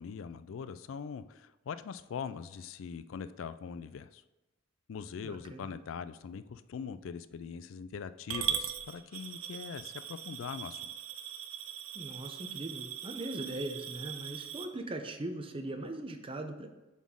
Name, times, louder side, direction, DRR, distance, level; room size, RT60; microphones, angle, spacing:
voice 1, 0.0-4.2 4.9-10.9, left 6 dB, 65° left, 13 dB, 0.3 m, -42 dB
voice 2, 5.2-5.7 11.9-16.7, right 1 dB, 25° right, 5 dB, 0.6 m, -40 dB
Coin (dropping) / Glass, 8.3-14.7, right 10 dB, 75° right, 0.6 m, -39 dB
7.1 x 4.2 x 3.6 m, 1.1 s
head